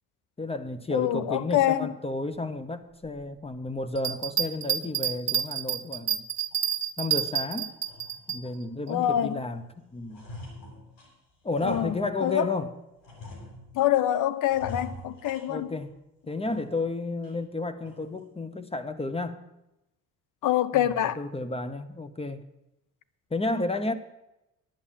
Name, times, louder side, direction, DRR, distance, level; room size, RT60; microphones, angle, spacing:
voice 1, 0.4-6.3 7.0-7.7 8.3-9.6 9.9-10.2 11.4-12.7 15.5-15.9 16.3-19.4 20.7-20.9 21.2-22.4 23.3-23.9, left 2 dB, 15° left, 0.9 m, -32 dB
voice 2, 0.9-1.9 8.9-9.4 11.6-12.5 13.7-15.7 20.4-21.2, left 12 dB, 65° left, 0.8 m, -25 dB
Bell, 4.0-8.4 8.9-9.0, right 10 dB, 50° right, 1.2 m, -28 dB
sound 1, 6.5-6.7 7.1-7.3 7.7-8.6 9.0-9.6 9.9-12.5 13.0-14.0 14.5-15.9 16.3-16.9 17.2-17.3 17.8-18.2, left 2 dB, 90° left, 3.6 m, -45 dB
10.5 x 8.4 x 7.3 m
supercardioid pair, 80°, 34 cm